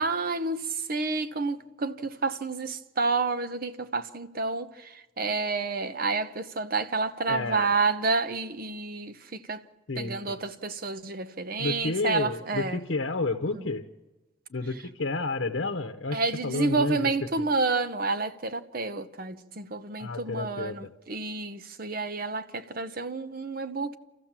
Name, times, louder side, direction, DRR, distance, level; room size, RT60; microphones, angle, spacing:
voice 1, 0.0-9.1 9.5-9.6 10.0-12.8 13.5-13.6 16.1-24.0, right 3 dB, 50° right, 0.8 m, -29 dB
voice 2, 7.3-7.8 9.9-10.4 11.6-13.8 14.5-17.1 17.4-17.5 20.0-20.8, left 3 dB, 70° left, 0.9 m, -31 dB
28.0 x 14.5 x 7.4 m
head